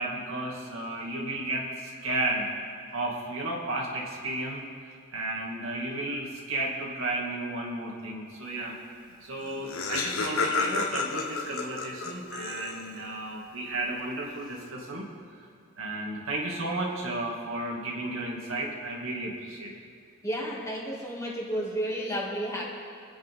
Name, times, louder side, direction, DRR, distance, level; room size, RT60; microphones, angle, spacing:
voice 1, 0.0-2.5 2.9-4.6 5.1-8.7 9.2-15.1 15.8-19.7, right 2 dB, 75° right, -2 dB, 2.4 m, -33 dB
Laughter, 9.1-9.2 9.4-13.1, left 4 dB, 80° left, 1.3 m, -31 dB
voice 2, 20.2-22.6, equal, 15° left, -4 dB, 2.4 m, -32 dB
26.5 x 9.6 x 3.8 m, 2.4 s
head